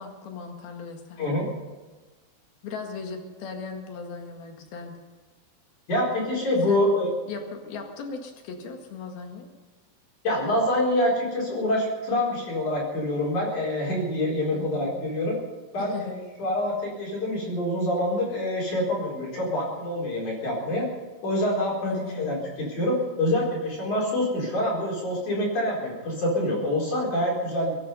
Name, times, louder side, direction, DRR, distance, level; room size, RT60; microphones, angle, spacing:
voice 1, 0.0-1.4 2.6-5.0 6.7-6.9 7.3-9.5 14.5-14.9 15.8-16.2 21.8-22.4, left 5 dB, 60° left, 3 dB, 3.5 m, -37 dB
voice 2, 5.9-7.1 10.2-15.3 15.7-20.9 21.2-27.8, left 1 dB, 40° left, -3 dB, 5.4 m, -26 dB
24.0 x 10.5 x 5.5 m, 1.3 s
omnidirectional pair, 5.3 m